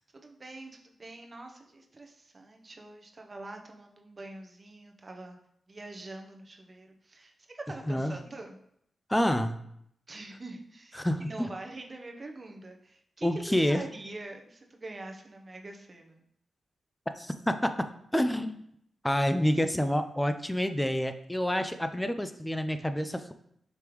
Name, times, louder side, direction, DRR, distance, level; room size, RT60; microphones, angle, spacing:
voice 1, 0.1-5.4 5.7-8.6 10.1-16.2, right 2 dB, 40° right, 3 dB, 0.8 m, -45 dB
voice 2, 9.1-9.6 11.0-11.5 13.2-13.8 17.2-18.6 19.0-23.3, equal, 10° left, 9 dB, 0.4 m, -28 dB
5.1 x 3.3 x 3.1 m, 0.71 s
supercardioid pair, 40°, 0 cm